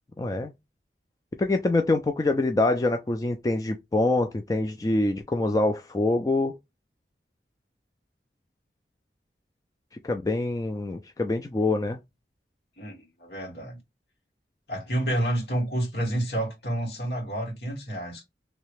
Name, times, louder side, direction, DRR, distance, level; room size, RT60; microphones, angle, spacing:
voice 1, 0.2-0.5 1.4-6.5 10.0-12.0, left 2 dB, 20° left, 0.3 m, -25 dB
voice 2, 12.8-13.8 14.7-18.2, right 1 dB, 70° left, 2.1 m, -29 dB
3.1 x 2.9 x 3.2 m
head